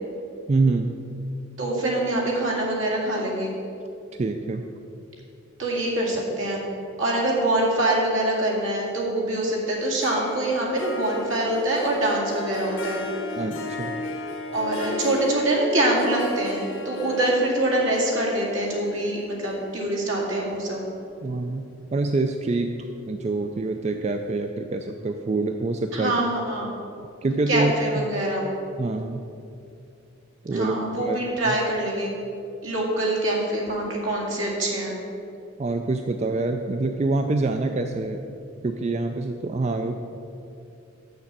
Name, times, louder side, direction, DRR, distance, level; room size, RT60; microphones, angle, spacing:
voice 1, 0.5-1.0 4.2-4.6 13.4-13.9 21.2-21.6 21.9-22.7 23.1-26.1 27.2-27.7 28.8-29.2 30.4-30.8 31.1-31.2 31.5-31.6 35.6-38.2 38.6-39.9, right 3 dB, 35° right, 5 dB, 0.3 m, -25 dB
voice 2, 1.6-3.5 5.6-6.6 7.0-13.0 14.5-20.9 25.9-26.7 27.5-28.5 30.5-32.1 32.6-35.0, right 1 dB, 75° right, -3 dB, 2.2 m, -24 dB
Harp, 10.0-21.4, left 3 dB, 80° left, 1.1 m, -35 dB
7.0 x 6.5 x 7.4 m, 2.6 s
head